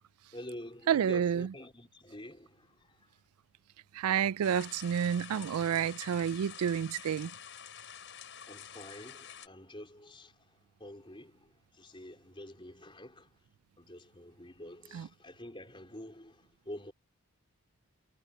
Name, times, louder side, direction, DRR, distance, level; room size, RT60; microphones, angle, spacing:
voice 1, 0.3-3.1 8.5-13.3 13.8-16.9, left 1 dB, 20° left, 4.3 m, -48 dB
voice 2, 0.9-1.5 3.9-7.3 14.9-15.1, right 8 dB, 85° right, 0.3 m, -29 dB
sound 1, 4.4-9.5, left 9 dB, 55° left, 7.8 m, -48 dB
head